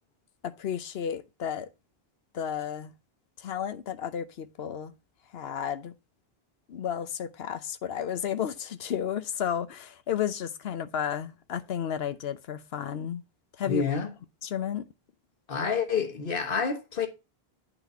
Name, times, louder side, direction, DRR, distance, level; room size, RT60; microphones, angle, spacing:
voice 1, 0.4-1.7 2.3-2.9 3.4-4.9 5.3-5.9 6.7-13.2 13.6-13.8 14.4-14.8, left 9 dB, 75° left, 1.0 m, -32 dB
voice 2, 13.7-14.1 15.5-17.1, left 5 dB, 60° left, 1.5 m, -28 dB
8.9 x 4.1 x 5.5 m
omnidirectional pair, 1.0 m